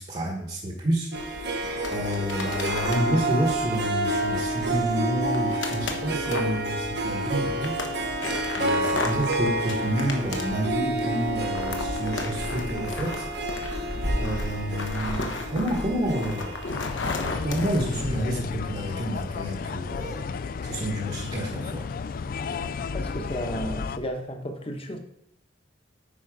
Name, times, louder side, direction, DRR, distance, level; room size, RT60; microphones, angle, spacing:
voice 1, 0.0-1.5 1.9-7.8 8.5-13.3 14.1-16.6 17.4-20.2 20.6-21.9, right 1 dB, 35° right, 0 dB, 1.2 m, -29 dB
sound 1, 1.1-18.1, left 2 dB, 70° left, 1.2 m, -35 dB
Harp, 1.1-17.9, right 1 dB, 60° right, 1.1 m, -30 dB
sound 2, 16.7-24.0, left 5 dB, 50° left, 0.3 m, -33 dB
voice 2, 22.9-25.0, equal, 30° left, 5 dB, 1.1 m, -33 dB
8.7 x 5.4 x 4.9 m, 0.71 s
head